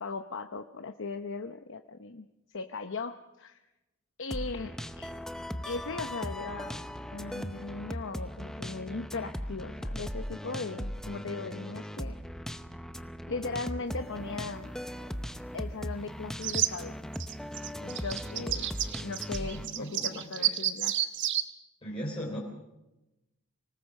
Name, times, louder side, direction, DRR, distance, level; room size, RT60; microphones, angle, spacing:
voice 1, 0.0-3.6 4.2-5.1 5.7-6.8 7.1-12.1 13.3-14.7 15.5-16.9 17.8-18.7 19.0-21.1, left 3 dB, 60° left, 8 dB, 0.8 m, -38 dB
sound 1, 4.3-19.7, equal, ahead, 0.8 m, -38 dB
sound 2, 16.4-16.7 17.1-21.4, right 11 dB, 55° right, 1.2 m, -30 dB
voice 2, 19.1-20.6 21.8-22.4, equal, 25° left, -2 dB, 3.3 m, -39 dB
25.5 x 18.5 x 6.5 m, 0.99 s
head